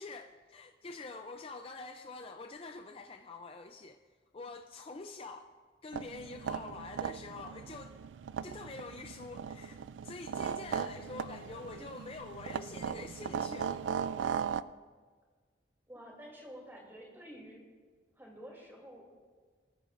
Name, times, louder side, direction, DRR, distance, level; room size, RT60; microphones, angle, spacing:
voice 1, 0.0-4.0 4.3-5.5 5.8-8.0 8.4-13.8, left 3 dB, 30° left, 5 dB, 0.4 m, -46 dB
sound 1, 5.9-14.6, right 7 dB, 75° right, 0.3 m, -38 dB
voice 2, 15.9-17.6 18.2-19.1, equal, 10° right, -2 dB, 2.9 m, -50 dB
21.0 x 14.0 x 2.6 m, 1.5 s
head